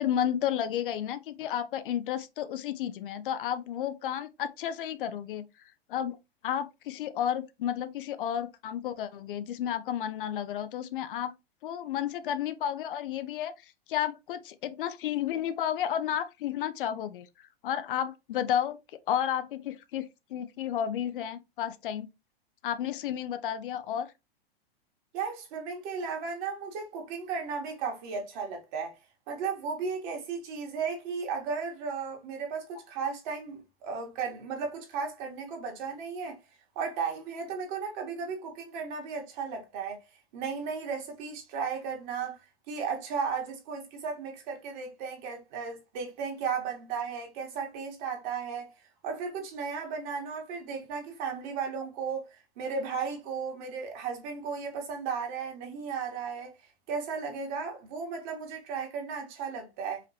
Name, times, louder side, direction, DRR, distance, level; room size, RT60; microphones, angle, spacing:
voice 1, 0.0-5.4 5.9-6.2 6.4-11.3 11.6-17.3 17.6-18.8 19.1-20.0 20.3-22.1 22.6-24.1, left 10 dB, 60° left, 0.7 m, -32 dB
voice 2, 25.1-29.0 29.3-36.4 36.8-40.0 40.3-42.4 42.7-48.7 49.0-52.3 52.6-56.5 56.9-60.0, right 5 dB, 50° right, 1.9 m, -35 dB
5.0 x 3.0 x 2.8 m
hypercardioid pair, 110°, 30 cm